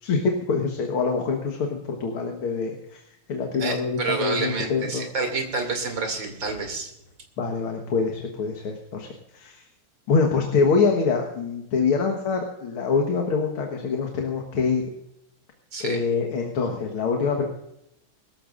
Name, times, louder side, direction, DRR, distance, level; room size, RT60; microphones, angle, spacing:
voice 1, 0.0-3.0 3.3-5.0 7.4-9.7 10.1-14.8 15.8-17.5, left 5 dB, 75° left, 2 dB, 2.3 m, -25 dB
voice 2, 3.6-6.9 15.7-16.0, right 4 dB, 60° right, 4 dB, 3.3 m, -28 dB
24.0 x 13.5 x 2.6 m, 0.82 s
omnidirectional pair, 2.3 m